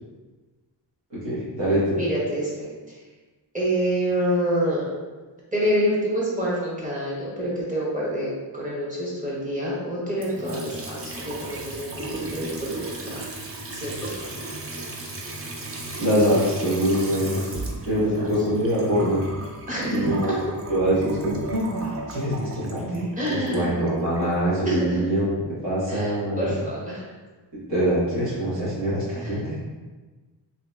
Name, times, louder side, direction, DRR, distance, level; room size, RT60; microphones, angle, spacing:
voice 1, 1.2-1.8 16.0-17.4 17.8-19.2 19.8-20.3 20.7-25.3 25.6-26.4 27.7-29.6, equal, 85° right, -10 dB, 1.3 m, -24 dB
voice 2, 1.9-2.7 3.5-4.9 5.5-13.2 13.7-14.2 18.0-18.3 19.7-20.2 23.2-23.7 24.7-25.0 25.9-26.1 26.4-27.0 29.2-29.3, equal, 20° right, -6 dB, 0.8 m, -27 dB
Water tap faucet / Sink (filling or washing) / Trickle dribble, 10.2-24.3, right 2 dB, 35° right, 0.4 m, -36 dB
2.8 x 2.7 x 2.2 m, 1.3 s
wide cardioid pair, 130°, 43 cm